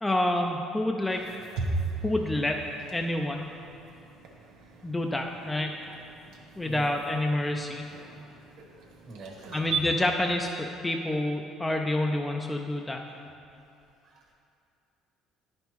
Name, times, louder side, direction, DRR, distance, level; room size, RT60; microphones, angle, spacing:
voice 1, 0.0-1.2 2.0-2.6 2.9-3.5 4.8-5.8 6.6-7.9 9.5-13.0, left 1 dB, 10° left, 2 dB, 0.4 m, -28 dB
sound 1, 1.1-9.8, right 4 dB, 75° right, 0.9 m, -38 dB
voice 2, 8.7-9.7 14.0-14.3, right 2 dB, 60° right, -1 dB, 1.6 m, -46 dB
9.9 x 5.3 x 3.0 m, 2.6 s
supercardioid pair, 95°, 0 cm